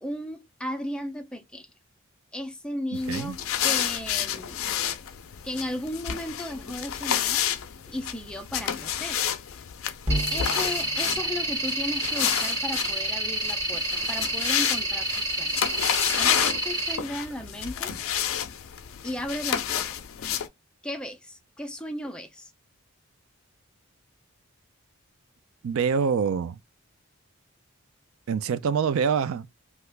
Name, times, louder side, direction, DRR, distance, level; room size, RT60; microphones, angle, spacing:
voice 1, 0.0-1.7 2.3-4.7 5.4-7.4 7.9-9.2 10.3-15.6 16.1-17.9 19.0-19.9 20.8-22.5, left 1 dB, 5° left, 0.4 m, -35 dB
sound 1, 3.0-20.5, left 10 dB, 65° left, 0.4 m, -30 dB
sound 2, 10.0-14.4, equal, 20° right, 0.9 m, -36 dB
sound 3, 10.1-17.0, right 1 dB, 50° right, 1.1 m, -29 dB
voice 2, 25.6-26.6 28.3-29.5, right 6 dB, 65° right, 0.3 m, -25 dB
2.8 x 2.4 x 3.3 m
head